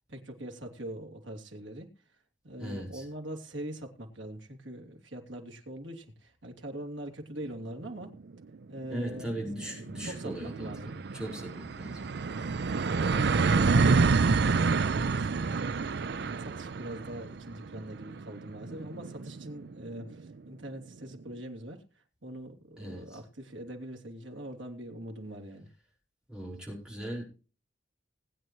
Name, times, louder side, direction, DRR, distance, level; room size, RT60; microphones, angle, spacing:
voice 1, 0.1-1.9 2.4-8.2 8.7-9.7 10.0-10.9 12.7-15.4 16.2-25.7, right 1 dB, 80° right, 3 dB, 3.0 m, -42 dB
voice 2, 2.6-3.0 8.9-10.7 11.1-12.1 22.8-23.2 26.3-27.2, right 1 dB, 5° right, -2 dB, 4.8 m, -38 dB
sound 1, 8.0-8.1 8.4-8.5 8.8-20.2, right 4 dB, 55° right, 0.5 m, -28 dB
20.0 x 9.1 x 3.1 m, 0.34 s
head